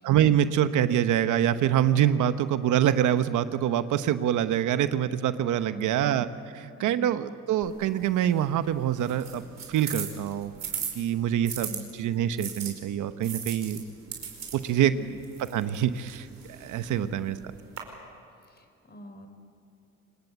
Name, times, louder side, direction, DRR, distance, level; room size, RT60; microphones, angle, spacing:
voice 1, 0.0-6.3 6.5-9.4 9.7-10.5 10.9-13.8 14.5-14.9 15.5-17.4, right 10 dB, 80° right, 11 dB, 1.0 m, -25 dB
voice 2, 5.5-6.0 6.7-7.2 11.4-11.9 14.7-15.2 18.5-19.3, equal, 35° left, 7 dB, 4.2 m, -44 dB
sound 1, 7.6-11.8 12.4-17.8, right 7 dB, 60° right, 4.8 m, -39 dB
25.5 x 21.0 x 8.3 m, 2.6 s
cardioid pair, 90°, 30 cm